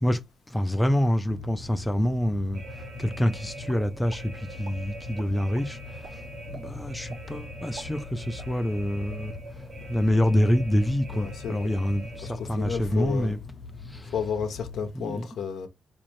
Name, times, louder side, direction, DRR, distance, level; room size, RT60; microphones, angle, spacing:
voice 1, 0.5-2.6 3.0-5.8 6.5-9.3 9.9-13.4 13.9-14.1 14.9-15.3, equal, 10° left, 0.4 m, -26 dB
sound 1, 1.3-14.9, left 4 dB, 40° left, 0.8 m, -42 dB
sound 2, 2.5-13.4, right 3 dB, 55° right, 1.0 m, -45 dB
sound 3, 3.7-4.2 4.6-4.8 5.2-5.7 6.0-6.1 6.5-6.6 7.1-7.2 7.6-8.8 9.1-9.2 9.6-9.9, right 3 dB, 85° right, 0.9 m, -46 dB
voice 2, 11.1-11.7 12.2-13.3 14.0-15.7, left 6 dB, 85° left, 0.7 m, -32 dB
4.1 x 2.6 x 3.1 m
cardioid pair, 90°, 0 cm